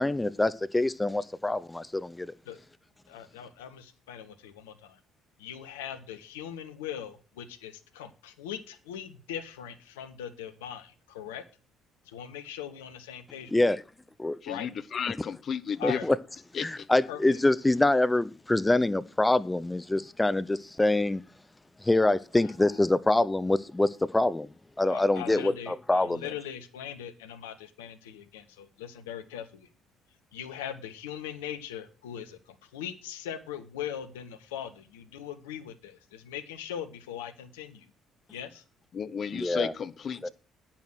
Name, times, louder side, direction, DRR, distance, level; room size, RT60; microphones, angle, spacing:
voice 1, 0.0-2.3 13.5-13.8 14.2-14.4 15.8-16.1 16.6-21.2 21.8-24.5 24.8-26.2 39.3-39.7 40.2-40.3, left 2 dB, 15° left, 0.7 m, -25 dB
voice 2, 3.1-5.0 5.4-11.4 12.0-13.5 14.4-14.7 15.8-16.1 17.1-17.4 22.4-22.5 24.9-29.7 30.3-37.9 38.3-38.6, left 9 dB, 75° left, 1.0 m, -40 dB
voice 3, 14.4-16.0 16.5-16.9 38.9-40.3, left 7 dB, 45° left, 0.9 m, -33 dB
10.0 x 9.3 x 6.2 m
figure-of-eight pair, 45°, 0 cm